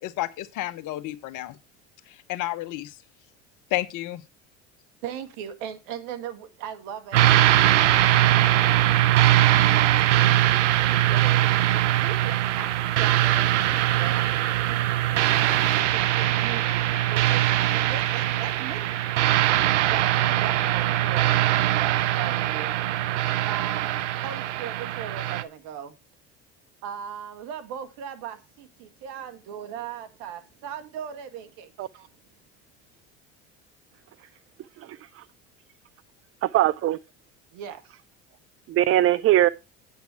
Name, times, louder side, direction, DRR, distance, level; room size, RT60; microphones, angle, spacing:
voice 1, 0.0-1.6 2.1-3.0 3.7-4.2, left 16 dB, 60° left, 1.0 m, -31 dB
voice 2, 5.0-8.6 9.1-10.5 10.9-15.0 15.4-19.2 19.9-21.3 21.7-22.7 23.0-24.0 24.2-25.9 26.8-32.1 34.2-34.3 37.5-38.0, right 8 dB, 70° right, 1.8 m, -39 dB
sound 1, 7.1-25.4, right 14 dB, 90° right, 0.7 m, -21 dB
voice 3, 34.8-35.2 36.4-37.0 38.7-39.5, right 13 dB, 40° right, 0.5 m, -21 dB
8.4 x 8.1 x 4.6 m
hypercardioid pair, 75°, 35 cm